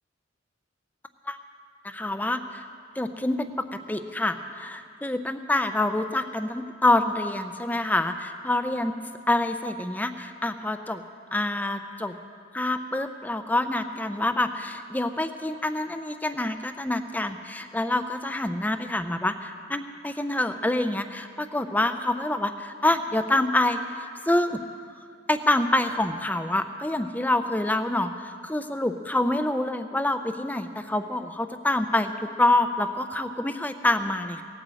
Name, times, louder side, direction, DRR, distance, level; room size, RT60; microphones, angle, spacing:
voice 1, 1.8-2.6 3.0-8.9 9.3-11.0 11.3-12.1 12.5-24.6 25.3-34.4, left 1 dB, 10° left, 9 dB, 0.6 m, -26 dB
18.0 x 9.1 x 7.7 m, 2.3 s
head